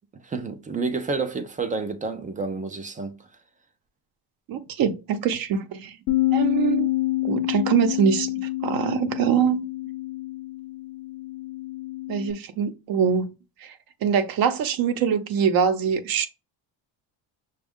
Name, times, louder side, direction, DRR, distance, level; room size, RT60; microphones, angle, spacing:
voice 1, 0.1-3.2, right 4 dB, 20° right, 0.4 m, -29 dB
voice 2, 4.5-5.9 6.3-6.9 7.2-9.6 12.1-13.3 13.6-13.7 14.0-16.3, right 7 dB, 55° right, 0.7 m, -23 dB
Bass guitar, 6.1-12.3, left 17 dB, 85° left, 0.8 m, -27 dB
6.0 x 2.3 x 3.5 m
cardioid pair, 130°, 43 cm